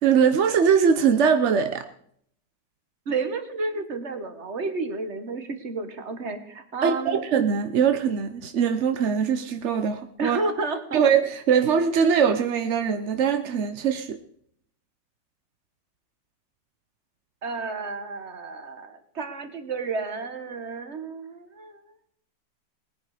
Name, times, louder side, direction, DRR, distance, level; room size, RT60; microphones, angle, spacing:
voice 1, 0.0-1.8 6.8-10.4 10.9-14.2, right 7 dB, 60° right, 8 dB, 0.8 m, -22 dB
voice 2, 3.0-7.2 10.2-11.0 17.4-21.9, right 3 dB, 40° right, 8 dB, 1.6 m, -31 dB
19.5 x 10.0 x 4.9 m, 0.67 s
omnidirectional pair, 2.1 m